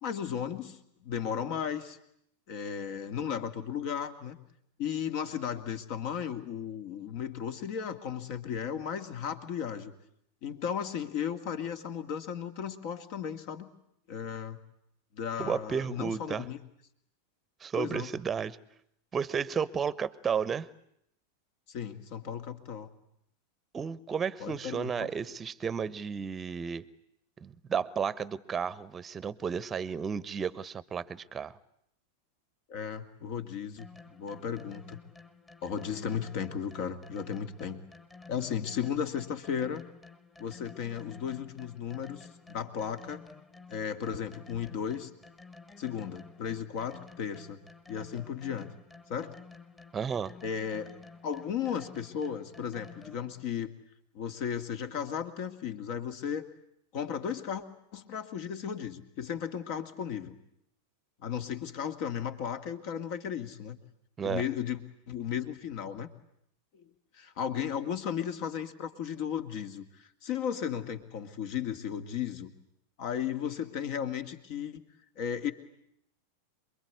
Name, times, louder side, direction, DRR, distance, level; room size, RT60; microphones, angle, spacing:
voice 1, 0.0-2.0 2.5-4.4 4.8-9.9 10.4-13.7 14.1-14.6 15.1-16.6 17.8-18.1 21.7-22.9 24.4-25.1 32.7-35.0 35.6-37.8 38.3-39.8 40.4-43.2 43.7-45.1 45.8-47.6 47.9-48.7 49.1-49.3 50.4-51.0 51.2-53.7 54.1-56.5 56.9-57.6 57.9-60.4 61.2-63.8 64.2-64.8 65.1-66.1 66.7-66.9 67.1-72.5 73.0-74.8 75.2-75.5, left 8 dB, 45° left, 9 dB, 2.3 m, -35 dB
voice 2, 15.4-16.4 17.6-18.6 19.1-20.7 23.7-26.8 27.4-31.5 49.9-50.3 64.2-64.4, right 6 dB, 20° right, 20 dB, 1.0 m, -33 dB
sound 1, 33.8-53.4, left 4 dB, 15° left, 2.0 m, -52 dB
27.5 x 22.5 x 9.6 m, 0.74 s
figure-of-eight pair, 90°, 0 cm